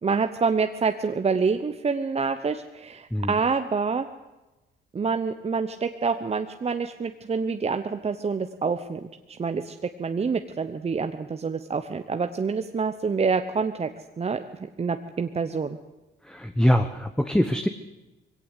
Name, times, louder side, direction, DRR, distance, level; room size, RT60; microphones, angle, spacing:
voice 1, 0.0-4.1 4.9-9.1 9.4-9.7 10.0-13.9 14.2-14.4 14.8-15.8, right 5 dB, 30° right, 8 dB, 1.0 m, -27 dB
voice 2, 16.3-17.7, equal, 5° left, 8 dB, 1.1 m, -23 dB
20.5 x 17.0 x 8.4 m, 1.1 s
cardioid pair, 90°, 20 cm